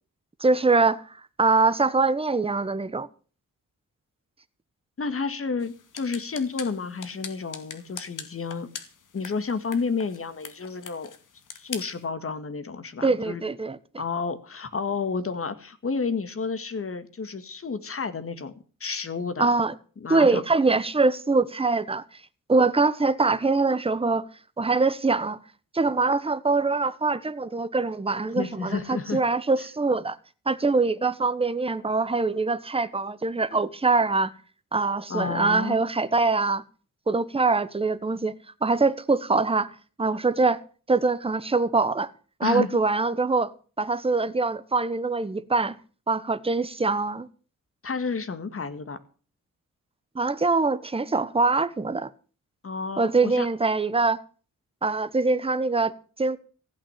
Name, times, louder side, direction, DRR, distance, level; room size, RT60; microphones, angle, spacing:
voice 1, 0.4-3.1 13.0-13.8 19.4-19.7 20.1-22.0 22.5-24.3 24.6-25.4 25.7-30.2 30.5-34.3 34.7-36.6 37.1-38.3 38.6-39.7 40.0-40.6 40.9-42.1 42.4-43.5 43.8-45.8 46.1-47.3 50.1-52.1 53.0-54.2 54.8-55.9 56.2-56.4, right 3 dB, 15° right, 1.1 m, -23 dB
voice 2, 5.0-8.7 9.1-11.1 11.5-13.4 14.0-18.5 18.8-19.5 20.0-20.4 28.4-29.2 35.1-35.8 42.4-42.8 47.8-49.0 52.6-53.5, left 5 dB, 45° left, 1.9 m, -30 dB
sound 1, 5.6-12.0, left 6 dB, 70° left, 2.2 m, -43 dB
15.5 x 6.1 x 10.0 m
cardioid pair, 95°, 32 cm